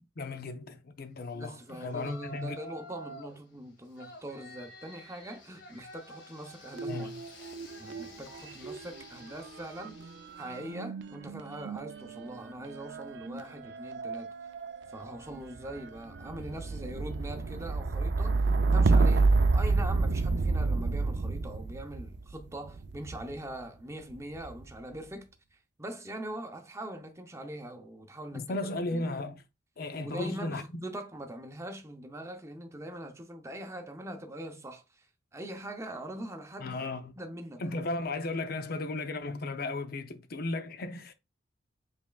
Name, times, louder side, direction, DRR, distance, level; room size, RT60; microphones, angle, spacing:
voice 1, 0.2-2.6 6.9-7.1 28.3-29.4 29.8-30.8 36.6-37.1 37.6-41.1, left 2 dB, 55° left, 0.6 m, -35 dB
voice 2, 1.3-7.1 7.8-10.1 10.4-14.3 14.9-28.5 28.9-29.1 29.9-35.1 35.3-36.8 37.2-37.8, right 1 dB, 15° right, 0.7 m, -42 dB
Yell, 1.8-3.4 3.9-10.7, equal, 85° left, 1.6 m, -49 dB
sound 1, 6.7-8.1 8.3-23.4 24.2-24.7, right 3 dB, 65° right, 0.5 m, -29 dB
5.3 x 3.5 x 2.3 m
head